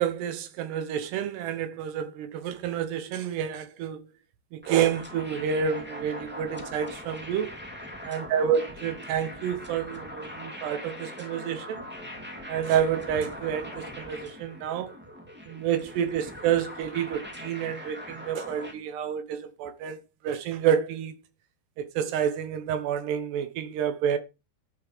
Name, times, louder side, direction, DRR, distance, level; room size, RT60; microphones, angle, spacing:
voice 1, 0.0-4.0 4.5-7.5 8.0-11.8 12.5-14.9 15.5-21.2 21.8-24.2, right 8 dB, 75° right, 3.1 m, -29 dB
sound 1, 4.6-18.7, left 1 dB, 5° right, 1.3 m, -41 dB
11.0 x 7.2 x 6.7 m
omnidirectional pair, 5.1 m